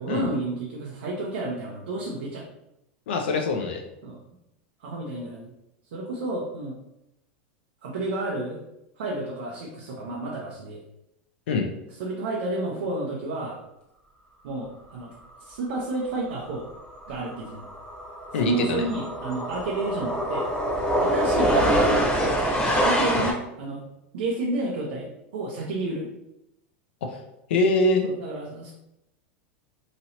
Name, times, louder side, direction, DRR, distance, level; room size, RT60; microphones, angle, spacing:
voice 1, 0.0-2.4 4.0-4.2 4.8-5.5 5.9-6.8 7.8-8.6 9.0-10.8 12.0-13.6 14.4-15.1 15.5-16.7 17.1-17.6 18.3-20.5 21.0-22.4 22.8-23.8 24.1-26.1 28.0-28.7, right 2 dB, 80° right, -3 dB, 0.6 m, -31 dB
voice 2, 3.1-3.8 11.5-11.7 18.3-18.8 23.2-23.3 27.0-27.2 27.5-28.1, left 3 dB, 80° left, 3 dB, 0.5 m, -23 dB
sound 1, 16.5-16.7 17.0-23.3, equal, 15° left, 0.8 m, -25 dB
3.0 x 2.8 x 2.8 m, 0.87 s
supercardioid pair, 130°, 6 cm